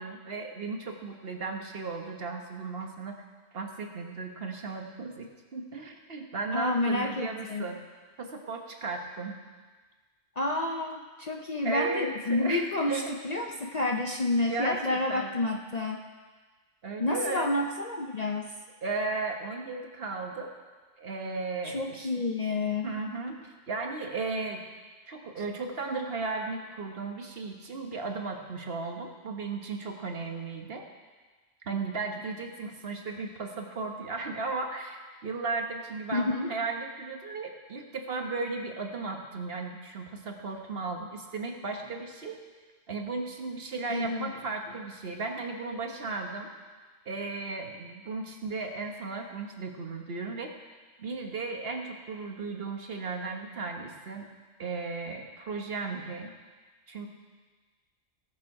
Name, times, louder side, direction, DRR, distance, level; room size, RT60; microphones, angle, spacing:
voice 1, 0.0-3.1 3.5-7.8 8.2-9.4 11.6-13.1 13.5-13.6 14.5-15.3 16.8-17.5 18.8-20.5 21.0-22.1 22.6-24.6 25.1-30.9 31.6-42.4 42.9-46.5 47.0-50.5 51.0-54.3 54.6-56.3 56.9-57.1, right 3 dB, 50° right, 3 dB, 1.4 m, -35 dB
voice 2, 6.5-7.7 10.4-16.0 17.0-18.5 21.6-22.9 36.1-36.5 43.9-44.3, left 2 dB, 45° left, 2 dB, 0.5 m, -29 dB
17.0 x 6.7 x 4.8 m, 1.4 s
omnidirectional pair, 1.3 m